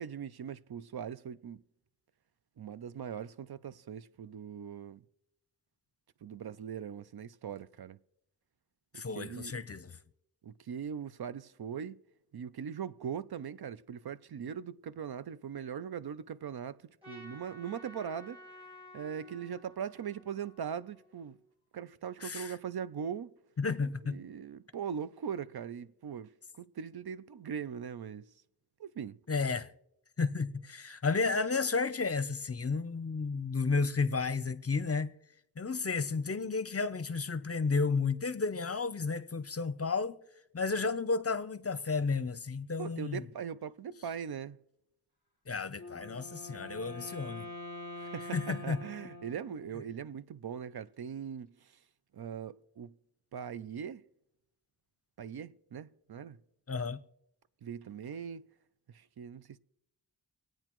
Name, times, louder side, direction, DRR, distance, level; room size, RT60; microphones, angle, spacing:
voice 1, 0.0-1.6 2.6-5.0 6.2-8.0 8.9-9.6 10.4-12.0 12.3-18.4 18.9-21.4 21.7-23.3 24.1-26.3 26.6-28.2 28.8-29.2 42.8-44.6 48.0-51.5 52.1-52.9 53.3-54.0 55.2-56.4 57.6-58.4 58.9-59.6, right 7 dB, 70° right, 0.5 m, -40 dB
voice 2, 8.9-9.9 22.2-22.5 23.6-24.2 29.3-29.7 30.2-35.1 35.6-40.2 40.5-43.2 45.5-47.5 48.3-48.8 56.7-57.0, left 4 dB, 40° left, 0.6 m, -32 dB
Trumpet, 17.0-21.4, left 1 dB, 15° right, 4.4 m, -53 dB
Wind instrument woodwind instrument, 45.7-50.0, left 2 dB, 85° right, 3.2 m, -45 dB
25.5 x 8.9 x 3.0 m
wide cardioid pair, 70°, 39 cm